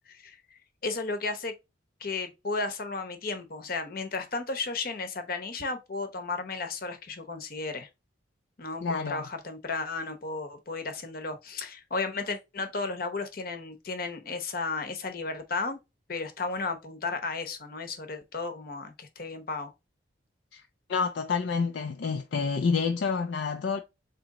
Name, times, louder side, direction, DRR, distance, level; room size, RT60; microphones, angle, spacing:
voice 1, 0.8-1.5 2.0-7.9 8.6-15.8 16.1-19.7, left 3 dB, 50° left, 0.8 m, -34 dB
voice 2, 8.8-9.2 20.5-20.6 20.9-23.8, left 5 dB, 65° left, 0.4 m, -28 dB
4.1 x 2.9 x 3.7 m
head